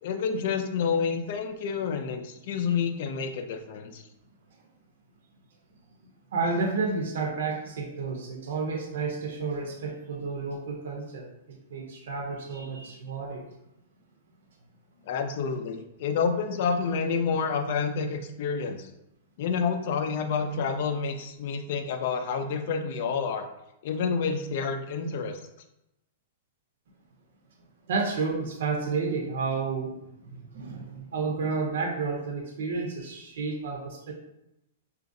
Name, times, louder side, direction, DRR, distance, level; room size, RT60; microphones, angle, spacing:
voice 1, 0.0-4.0 15.1-18.9 19.4-23.5 23.8-25.4, left 5 dB, 50° left, 7 dB, 0.4 m, -29 dB
voice 2, 6.0-13.4 27.9-29.9 30.2-34.1, right 4 dB, 75° right, 2 dB, 0.7 m, -31 dB
3.9 x 2.4 x 2.6 m, 0.86 s
hypercardioid pair, 160°, 0 cm